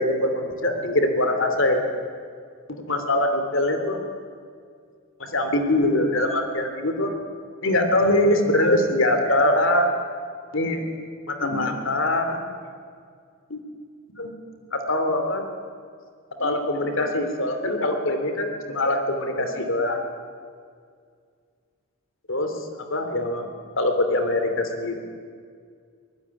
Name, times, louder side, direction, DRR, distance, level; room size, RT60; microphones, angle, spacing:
voice 1, 0.0-1.9 2.9-4.0 5.2-7.1 7.6-9.9 10.5-10.9 11.3-12.4 13.5-13.6 14.1-14.3 14.7-15.4 16.4-20.1 22.3-23.5 23.7-25.0, left 1 dB, 60° left, 6 dB, 3.1 m, -23 dB
23.0 x 20.0 x 9.9 m, 2.1 s
head